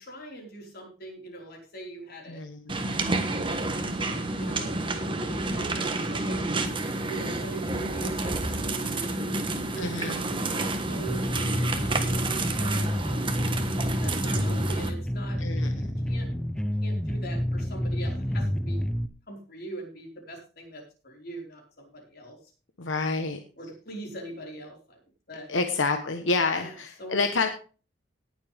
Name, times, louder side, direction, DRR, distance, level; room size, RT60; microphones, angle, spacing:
voice 1, 0.0-2.4 4.0-6.7 7.1-9.4 9.7-13.3 14.0-18.8 19.3-22.4 23.6-25.0 25.3-25.6 26.5-27.4, right 1 dB, 55° left, 0 dB, 4.9 m, -42 dB
voice 2, 2.3-2.6 9.8-10.2 15.4-15.9 22.8-23.4 25.5-27.5, left 3 dB, 90° left, 6 dB, 1.2 m, -28 dB
sound 1, 2.7-14.9, right 2 dB, 25° right, 1.5 m, -30 dB
sound 2, 11.1-19.1, equal, 5° left, 0.7 m, -29 dB
18.5 x 7.6 x 3.5 m, 0.36 s
head